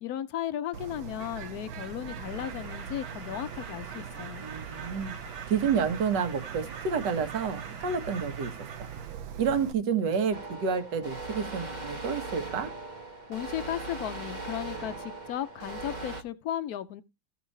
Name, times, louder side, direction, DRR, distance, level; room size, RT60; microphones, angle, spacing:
voice 1, 0.0-4.5 13.3-17.0, left 11 dB, 75° left, 0.8 m, -35 dB
Bird, 0.7-9.7, right 7 dB, 75° right, 1.6 m, -41 dB
sound 1, 2.2-9.2, right 4 dB, 90° right, 3.3 m, -47 dB
voice 2, 4.4-5.2 5.5-8.5 8.8-8.9 9.4-12.7, right 6 dB, 55° right, 1.7 m, -29 dB
sound 2, 10.3-16.2, right 3 dB, 35° right, 0.8 m, -39 dB
15.5 x 5.5 x 3.2 m
omnidirectional pair, 2.4 m